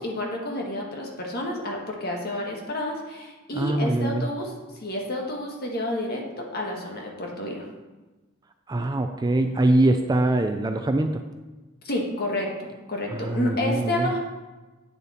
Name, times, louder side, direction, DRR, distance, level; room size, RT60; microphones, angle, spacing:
voice 1, 0.0-7.7 11.8-12.5 12.9-14.2, left 1 dB, 45° left, 0 dB, 1.6 m, -30 dB
voice 2, 3.5-4.3 8.7-11.2 13.1-14.1, right 2 dB, 20° right, 6 dB, 0.4 m, -23 dB
8.7 x 6.9 x 4.3 m, 1.2 s
head